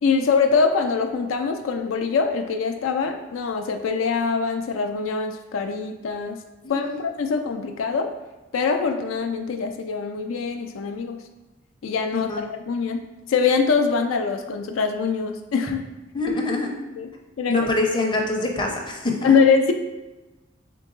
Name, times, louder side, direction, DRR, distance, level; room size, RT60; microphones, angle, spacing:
voice 1, 0.0-6.4 6.7-8.1 8.5-11.2 11.8-15.8 17.0-17.1 17.4-17.7 19.2-19.7, left 5 dB, 85° left, 5 dB, 0.4 m, -23 dB
voice 2, 6.6-7.0 12.1-12.4 16.1-16.7 17.5-19.4, left 2 dB, 25° left, 0 dB, 0.6 m, -25 dB
3.8 x 3.5 x 3.8 m, 1.1 s
head